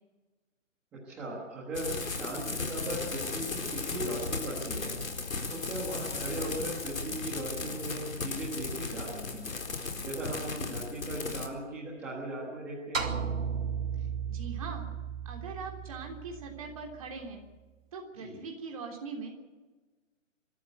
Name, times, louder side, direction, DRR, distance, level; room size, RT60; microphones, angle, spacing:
voice 1, 0.9-5.0 5.5-9.6 10.0-13.2 18.2-18.4, right 1 dB, 5° right, -8 dB, 1.3 m, -38 dB
sound 1, 1.7-11.5, left 4 dB, 90° left, 4.3 m, -36 dB
sound 2, 12.9-17.4, right 7 dB, 75° right, 4.0 m, -35 dB
voice 2, 14.3-14.8 15.2-17.4 17.9-19.5, right 4 dB, 25° right, 1 dB, 3.4 m, -41 dB
26.0 x 13.0 x 8.0 m, 1.2 s
hypercardioid pair, 175°, 40 cm